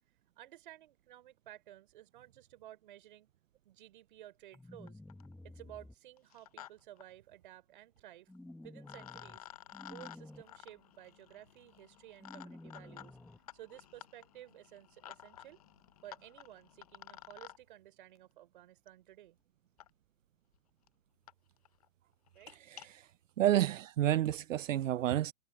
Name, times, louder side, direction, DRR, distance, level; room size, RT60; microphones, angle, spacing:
voice 1, 0.4-3.3 3.6-5.0 5.4-8.3 8.6-9.5 9.9-13.2 13.5-15.6 16.0-19.4 22.4-22.6, right 13 dB, 40° right, 5.2 m, -54 dB
sound 1, 4.5-4.6 4.9-5.3 6.2-6.7 7.0-7.1 8.3-8.4 8.8-17.6 18.9-19.0 19.8-19.9 20.5-20.6 20.9-21.0 21.3-21.4 21.7-21.9 22.3-22.9, left 12 dB, 30° left, 0.8 m, -53 dB
sound 2, 4.5-5.9 8.3-9.4 9.7-10.4 12.2-13.4, left 1 dB, ahead, 1.3 m, -51 dB
voice 2, 22.5-23.1 23.4-25.3, right 12 dB, 80° right, 0.5 m, -30 dB
hypercardioid pair, 160°, 38 cm